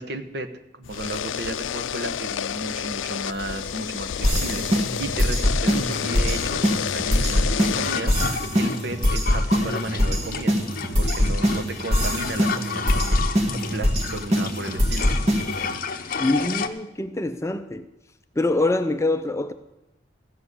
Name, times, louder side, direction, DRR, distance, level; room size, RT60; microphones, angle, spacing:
voice 1, 0.0-10.6 11.0-15.1, right 2 dB, 60° right, 7 dB, 1.0 m, -34 dB
sound 1, 0.8-8.0, left 9 dB, 90° left, 0.4 m, -29 dB
sound 2, 4.2-15.7, equal, 35° right, 1.6 m, -23 dB
sound 3, 5.9-16.7, left 5 dB, 50° left, 0.8 m, -32 dB
voice 2, 16.2-17.8 18.4-19.5, left 2 dB, 15° left, 9 dB, 0.5 m, -24 dB
14.5 x 7.5 x 8.2 m, 0.90 s
head